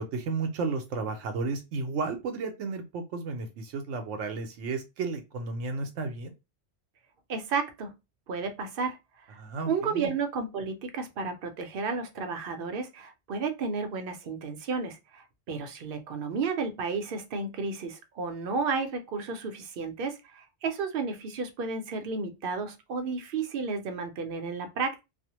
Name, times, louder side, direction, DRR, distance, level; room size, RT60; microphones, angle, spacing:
voice 1, 0.0-6.3 9.4-10.1, right 4 dB, 85° right, 0.9 m, -33 dB
voice 2, 7.3-7.9 8.3-9.0 9.3-9.4 9.7-25.0, right 4 dB, 60° right, 0.7 m, -32 dB
2.5 x 2.1 x 2.7 m
omnidirectional pair, 1.2 m